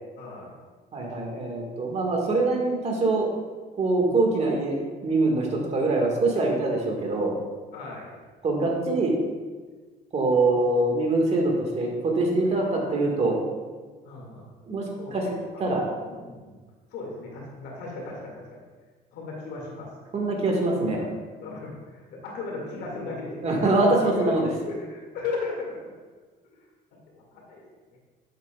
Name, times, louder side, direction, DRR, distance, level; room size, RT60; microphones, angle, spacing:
voice 1, 0.2-0.5 4.1-4.2 7.7-8.1 10.5-10.6 14.0-14.5 15.0-15.6 16.1-16.6 16.9-18.6 19.1-19.9 20.4-20.5 21.4-24.4 24.7-25.9 27.3-27.6 27.9-28.0, left 3 dB, 90° left, -2 dB, 2.3 m, -36 dB
voice 2, 0.9-3.3 3.8-7.4 8.4-9.2 10.1-13.4 14.7-15.3 15.6-15.8 20.1-21.1 23.4-24.5, right 2 dB, 40° right, 0 dB, 1.9 m, -24 dB
10.5 x 7.6 x 2.4 m, 1.4 s
cardioid pair, 110°, 17 cm